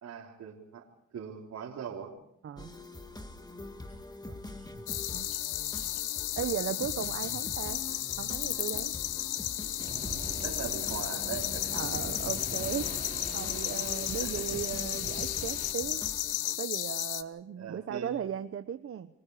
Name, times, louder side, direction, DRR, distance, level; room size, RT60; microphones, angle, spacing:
voice 1, 0.0-0.9 1.1-2.2 4.3-4.4 10.4-11.8 14.2-14.6 17.6-18.1, right 7 dB, 65° right, -4 dB, 4.1 m, -41 dB
voice 2, 2.4-2.7 4.6-4.7 5.1-5.4 5.8-5.9 6.4-7.8 8.2-8.9 11.7-12.9 13.3-16.0 16.6-19.1, right 9 dB, 45° right, 10 dB, 1.0 m, -36 dB
sound 1, 2.6-16.6, left 1 dB, 15° left, 2.1 m, -44 dB
sound 2, 4.9-17.2, left 13 dB, 85° left, 1.2 m, -34 dB
Waves surf, 9.8-15.7, right 3 dB, 30° right, 3.3 m, -44 dB
29.5 x 24.5 x 5.0 m, 0.71 s
cardioid pair, 90°, 30 cm